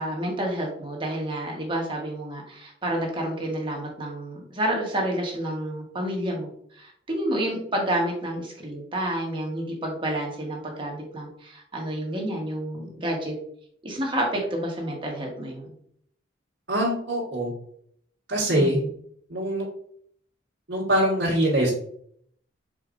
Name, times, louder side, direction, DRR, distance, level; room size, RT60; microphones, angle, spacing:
voice 1, 0.0-13.4 13.8-15.7 18.6-18.9, right 1 dB, 25° right, -1 dB, 1.1 m, -29 dB
voice 2, 16.7-17.5 18.3-18.8 19.3-19.7 20.7-21.7, right 1 dB, 65° right, -7 dB, 1.4 m, -23 dB
5.0 x 4.1 x 2.5 m, 0.65 s
head